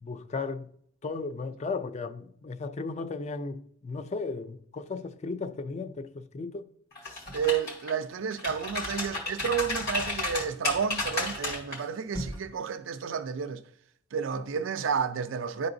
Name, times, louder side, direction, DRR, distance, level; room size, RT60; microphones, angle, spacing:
voice 1, 0.0-0.7 1.0-6.7, left 4 dB, 35° left, 0.4 m, -35 dB
sound 1, 7.0-7.9 8.3-11.8 12.1-12.4, left 2 dB, 50° left, 2.2 m, -32 dB
voice 2, 7.3-13.6 14.1-15.7, right 7 dB, 70° right, 0.4 m, -31 dB
11.0 x 3.9 x 2.6 m
head